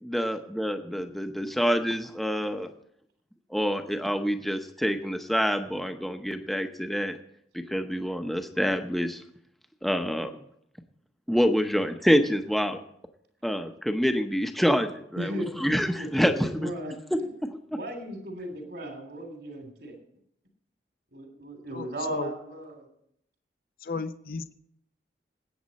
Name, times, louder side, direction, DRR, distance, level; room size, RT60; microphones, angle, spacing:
voice 1, 0.0-2.7 3.5-7.2 7.7-9.2 9.8-10.3 11.3-12.8 13.4-15.3 15.6-16.7, equal, ahead, 6 dB, 0.8 m, -26 dB
voice 2, 15.2-15.6 16.0-16.9 17.2-17.3 17.7-20.0 21.1-22.9, right 1 dB, 70° right, 3 dB, 3.1 m, -36 dB
voice 3, 21.7-22.3 23.8-24.5, left 3 dB, 50° left, 10 dB, 0.6 m, -34 dB
20.0 x 8.7 x 4.2 m, 0.72 s
head